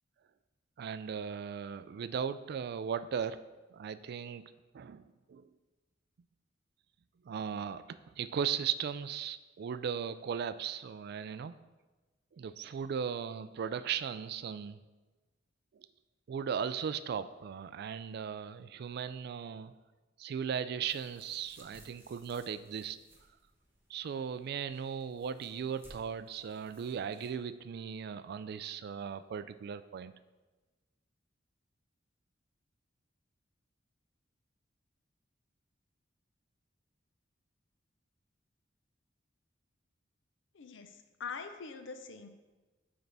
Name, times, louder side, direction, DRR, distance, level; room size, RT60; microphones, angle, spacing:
voice 1, 0.8-3.4 3.7-4.4 4.7-5.5 7.2-11.5 12.3-14.8 16.3-19.7 20.2-23.0 23.9-30.2, right 7 dB, 55° right, 13 dB, 0.3 m, -37 dB
sound 1, 20.8-27.3, right 1 dB, 10° right, 1.2 m, -61 dB
voice 2, 40.5-42.3, left 5 dB, 70° left, 7 dB, 0.6 m, -43 dB
8.9 x 3.4 x 4.0 m, 1.2 s
head